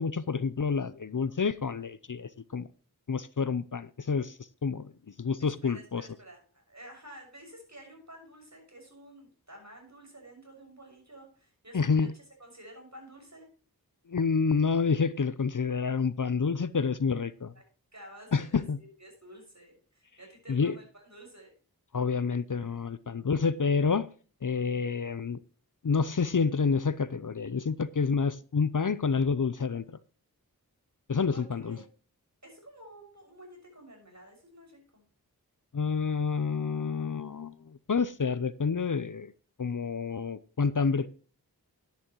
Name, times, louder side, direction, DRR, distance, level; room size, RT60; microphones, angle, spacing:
voice 1, 0.0-2.7 3.1-4.9 5.2-6.1 11.7-12.1 14.1-17.5 18.3-18.8 20.5-20.7 21.9-24.1 24.4-25.4 25.8-29.8 31.1-31.8 35.7-39.3 39.6-41.1, left 5 dB, 55° left, 17 dB, 0.6 m, -28 dB
voice 2, 5.4-12.1 12.4-13.5 17.5-17.6 17.9-21.5 31.3-31.8 32.4-35.0, right 1 dB, 45° right, 1 dB, 6.3 m, -51 dB
11.5 x 10.5 x 3.1 m, 0.39 s
wide cardioid pair, 40°, 38 cm